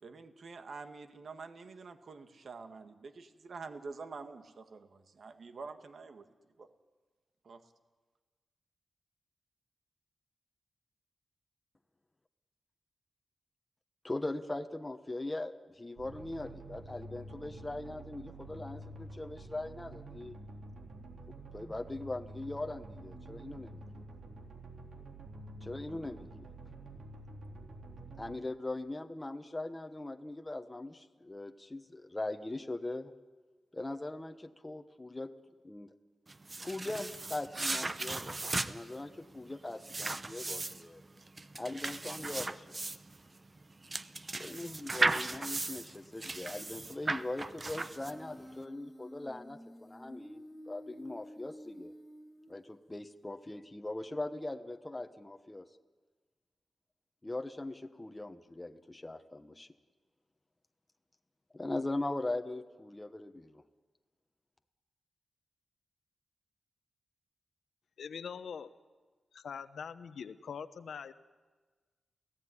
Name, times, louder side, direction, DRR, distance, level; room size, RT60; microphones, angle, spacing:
voice 1, 0.0-6.3 6.6-6.7 7.4-7.7, right 4 dB, 60° right, 7 dB, 1.8 m, -47 dB
voice 2, 14.0-20.4 21.3-23.8 25.6-26.5 28.2-33.1 33.7-35.3 35.6-35.9 36.6-41.0 41.6-42.8 44.4-51.9 52.5-55.7 57.2-59.7 61.5-63.6, left 2 dB, 15° left, 6 dB, 1.1 m, -40 dB
sound 1, 16.0-28.4, right 2 dB, 80° right, 3.5 m, -48 dB
sound 2, 36.3-48.4, right 2 dB, 30° right, 0.9 m, -36 dB
Human voice, 48.0-52.9, equal, ahead, 2.5 m, -51 dB
voice 3, 68.0-68.7 69.3-71.1, left 6 dB, 85° left, 11 dB, 1.0 m, -43 dB
29.5 x 16.5 x 9.9 m, 1.4 s
wide cardioid pair, 115°, 0 cm